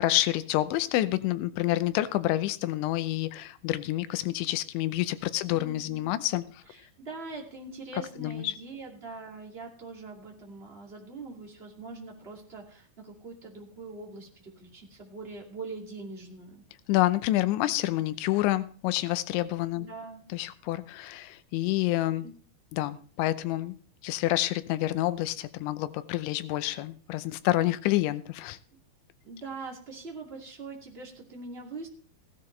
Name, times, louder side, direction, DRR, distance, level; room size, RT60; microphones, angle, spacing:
voice 1, 0.0-6.4 8.2-8.5 16.9-19.9 20.3-22.3 22.7-23.7 24.0-28.6, left 16 dB, 85° left, 14 dB, 3.1 m, -28 dB
voice 2, 5.4-6.1 6.7-16.6 19.7-20.2 22.2-22.3 29.2-31.9, right 3 dB, 25° right, 0 dB, 1.5 m, -43 dB
16.0 x 12.5 x 3.2 m, 0.43 s
omnidirectional pair, 5.2 m